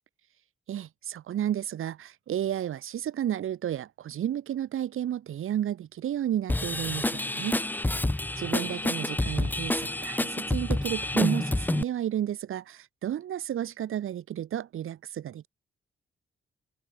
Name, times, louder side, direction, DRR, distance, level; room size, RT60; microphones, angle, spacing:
voice 1, 0.7-7.6 8.4-15.5, right 11 dB, 85° right, 3.0 m, -32 dB
Drum kit / Drum, 6.5-11.8, left 2 dB, 10° left, 1.0 m, -28 dB
wide cardioid pair, 140°, 21 cm